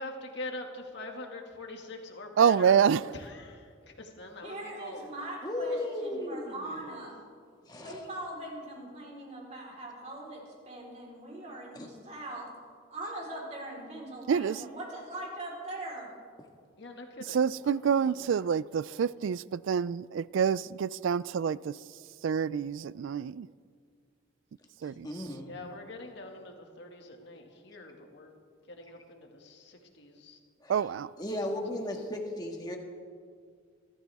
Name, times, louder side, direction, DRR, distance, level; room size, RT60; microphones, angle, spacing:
voice 1, 0.0-2.8 3.1-5.1 6.7-6.9 16.8-17.7 18.0-18.5 25.4-28.4 28.7-30.4 31.8-31.9, left 2 dB, 55° left, 2.1 m, -44 dB
voice 2, 2.4-3.0 14.3-14.6 17.3-21.8 22.2-23.5 24.8-25.1 30.7-31.1, right 7 dB, 70° right, 0.3 m, -27 dB
voice 3, 4.4-7.1 7.8-12.5 12.9-16.1, right 1 dB, 35° right, 4.2 m, -41 dB
voice 4, 5.4-6.7 7.7-8.0 11.7-11.9 25.0-25.5 30.6-30.7 31.2-32.8, left 1 dB, 20° left, 1.7 m, -35 dB
26.0 x 13.5 x 3.6 m
head